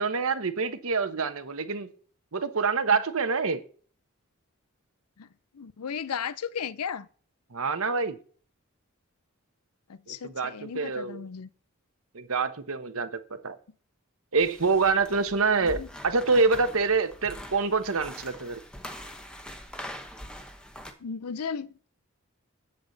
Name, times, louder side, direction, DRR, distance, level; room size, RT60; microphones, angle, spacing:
voice 1, 0.0-1.9 2.3-3.6 7.5-8.2 10.1-11.2 12.1-13.6 14.3-18.6, right 4 dB, 70° right, 1.0 m, -26 dB
voice 2, 5.5-7.1 9.9-11.5 15.6-15.9 21.0-21.9, left 7 dB, 90° left, 0.6 m, -35 dB
sound 1, 14.4-20.9, equal, 5° left, 0.9 m, -43 dB
8.6 x 8.1 x 4.0 m
head